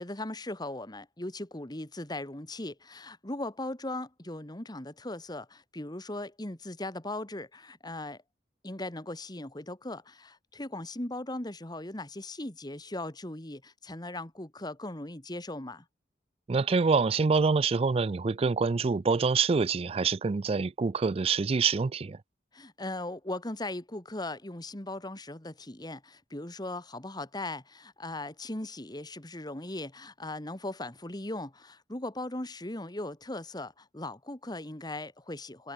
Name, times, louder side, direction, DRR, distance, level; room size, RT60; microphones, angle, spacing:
voice 1, 0.0-8.2 8.6-15.8 22.5-35.7, left 2 dB, 25° left, 2.0 m, -38 dB
voice 2, 16.5-22.2, right 4 dB, 35° right, 0.4 m, -26 dB
head